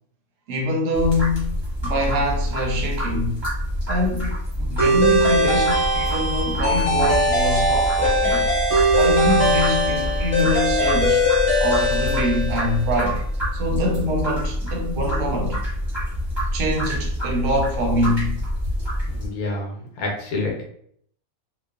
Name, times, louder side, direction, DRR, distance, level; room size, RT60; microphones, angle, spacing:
voice 1, 0.5-3.4 3.9-8.5 9.0-11.3 11.5-13.2 13.5-15.6 16.5-18.4, left 1 dB, 70° right, 0.9 m, -24 dB
sound 1, 0.9-19.3, equal, 25° right, 0.7 m, -27 dB
sound 2, 4.8-12.9, equal, 35° left, 0.7 m, -20 dB
voice 2, 19.1-20.6, left 2 dB, 85° left, 1.2 m, -28 dB
2.9 x 2.0 x 2.3 m
omnidirectional pair, 1.5 m